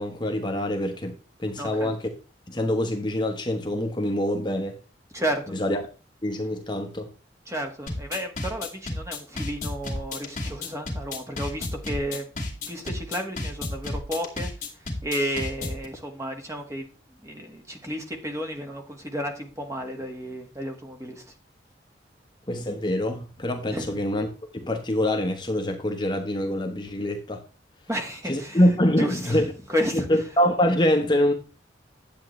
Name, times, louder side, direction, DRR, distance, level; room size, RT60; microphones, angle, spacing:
voice 1, 0.0-2.1 2.5-4.8 5.5-5.8 6.2-7.1 22.5-24.3 24.5-27.4 28.3-29.5 29.9-31.3, left 1 dB, 25° left, 1.1 m, -25 dB
voice 2, 1.6-1.9 5.1-5.6 7.5-14.5 15.0-16.8 17.2-21.2 23.7-24.0 27.9-29.4 29.7-30.1, equal, 15° right, 1.6 m, -32 dB
sound 1, 7.9-15.9, left 2 dB, 45° left, 2.5 m, -32 dB
10.5 x 8.1 x 3.2 m
head